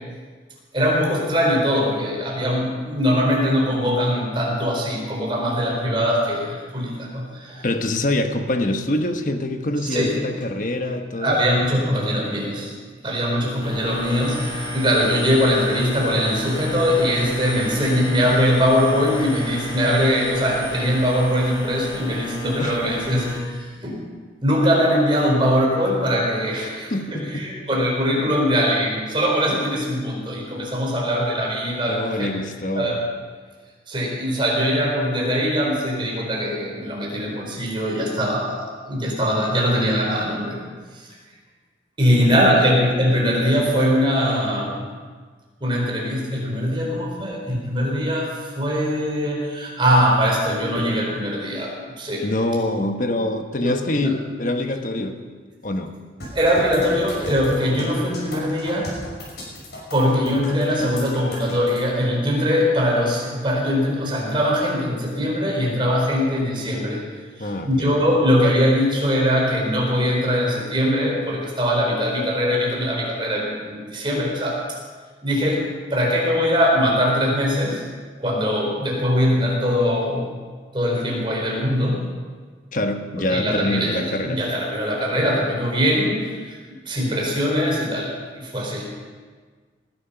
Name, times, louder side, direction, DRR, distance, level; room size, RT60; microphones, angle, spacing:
voice 1, 0.7-7.7 9.9-10.1 11.2-12.7 13.0-23.9 24.4-32.3 32.7-33.0 33.9-40.6 40.9-41.1 42.0-44.8 45.6-52.2 53.6-54.1 56.3-58.9 59.9-67.0 67.4-74.6 75.2-75.6 75.9-77.8 78.2-80.3 80.7-82.0 83.2-86.6 86.8-88.9, equal, 30° right, -2 dB, 4.4 m, -21 dB
voice 2, 7.6-11.4 22.6-22.8 26.6-27.5 31.9-33.0 42.1-42.6 52.2-55.2 55.6-55.9 67.4-67.9 82.7-84.4, left 1 dB, 45° left, 6 dB, 1.1 m, -25 dB
sound 1, 13.6-23.4, equal, 30° left, 3.4 m, -32 dB
sound 2, 56.2-61.8, left 1 dB, 65° left, 5.9 m, -36 dB
19.5 x 11.0 x 5.9 m, 1.5 s
head